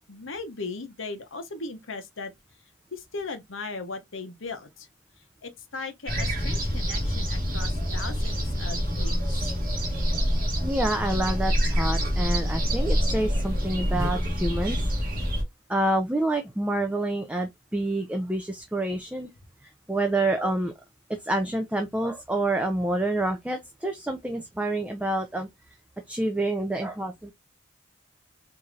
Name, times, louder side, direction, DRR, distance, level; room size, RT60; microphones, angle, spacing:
voice 1, 0.1-2.3 2.9-4.9 5.4-9.5, left 3 dB, 75° left, 0.9 m, -38 dB
sound 1, 6.1-15.4, equal, 45° right, 1.7 m, -26 dB
voice 2, 10.6-15.1 15.7-19.3 19.6-20.7 21.1-25.5 26.1-27.3, right 1 dB, 5° right, 0.4 m, -28 dB
4.7 x 2.8 x 2.4 m
head